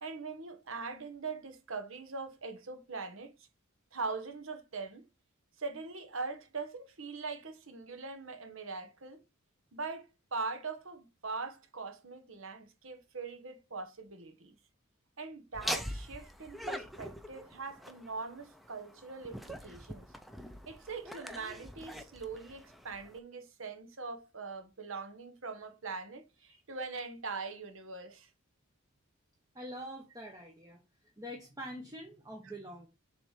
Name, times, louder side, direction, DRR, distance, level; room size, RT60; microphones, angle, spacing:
voice 1, 0.0-3.3 3.9-5.1 5.6-9.2 9.7-14.5 15.2-20.1 20.7-28.3, right 4 dB, 65° right, 1.2 m, -42 dB
Laughter, 15.5-23.2, equal, ahead, 0.6 m, -43 dB
voice 2, 29.5-30.8 31.2-32.9, equal, 15° right, 0.9 m, -45 dB
7.0 x 3.3 x 4.9 m
head